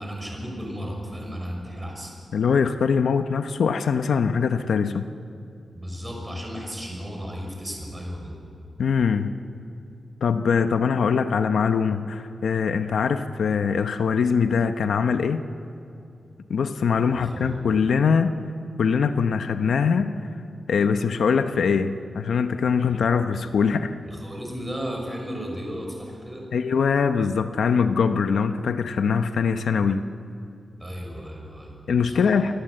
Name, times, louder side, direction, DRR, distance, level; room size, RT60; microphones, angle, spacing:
voice 1, 0.0-2.1 5.7-8.4 17.1-17.6 22.9-23.0 24.0-26.5 30.8-32.4, equal, 10° right, 0 dB, 6.2 m, -35 dB
voice 2, 2.3-5.1 8.8-9.3 10.2-15.4 16.5-18.4 18.8-20.1 20.7-23.9 26.5-30.0 31.9-32.6, left 6 dB, 90° left, 8 dB, 1.0 m, -22 dB
28.0 x 21.5 x 7.8 m, 2.5 s
wide cardioid pair, 160°, 0 cm